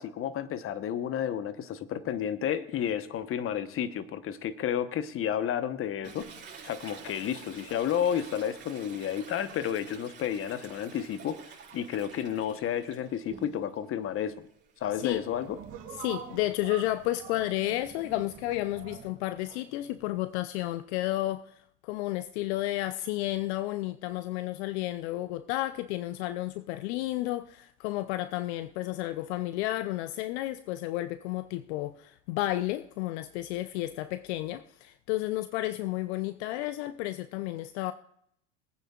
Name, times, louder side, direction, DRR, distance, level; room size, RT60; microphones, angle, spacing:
voice 1, 0.0-6.3 6.6-11.4 11.7-14.5 14.8-15.6, left 9 dB, 35° left, 1.0 m, -31 dB
Toilet flush, 6.0-13.8 14.2-18.5, right 6 dB, 30° right, 4.5 m, -50 dB
sound 1, 14.8-20.3, right 8 dB, 55° right, 3.3 m, -46 dB
voice 2, 15.9-37.9, left 16 dB, 65° left, 0.5 m, -32 dB
22.0 x 9.1 x 2.4 m
hypercardioid pair, 90°, 37 cm